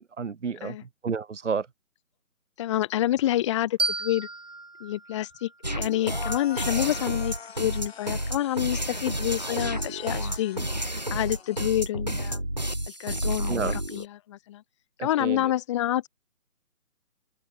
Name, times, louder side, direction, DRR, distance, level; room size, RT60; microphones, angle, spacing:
voice 1, 0.0-1.7 13.5-13.8 15.0-15.5, right 5 dB, 55° right, 1.2 m, -31 dB
voice 2, 2.6-4.3 4.8-10.6 11.1-12.4 13.0-14.6 15.0-16.1, left 13 dB, 20° left, 2.3 m, -28 dB
sound 1, 3.8-6.6, right 3 dB, 75° right, 6.9 m, -34 dB
sound 2, 5.6-14.1, right 1 dB, 30° right, 0.5 m, -30 dB
sound 3, 6.0-11.6, left 6 dB, 45° left, 3.9 m, -44 dB
open air
figure-of-eight pair, 150°, 44 cm